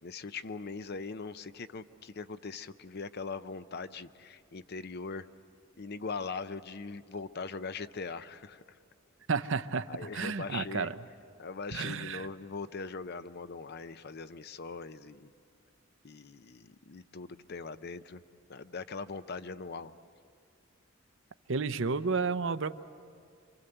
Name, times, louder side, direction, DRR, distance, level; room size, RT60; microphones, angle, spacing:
voice 1, 0.0-5.3 5.8-8.8 9.9-10.9 11.4-15.3 16.0-18.2 18.5-19.9, left 4 dB, 50° left, 12 dB, 0.7 m, -41 dB
voice 2, 9.3-11.0 11.7-12.3 21.5-22.8, right 4 dB, 65° right, 12 dB, 0.7 m, -32 dB
28.0 x 25.0 x 8.0 m, 2.3 s
head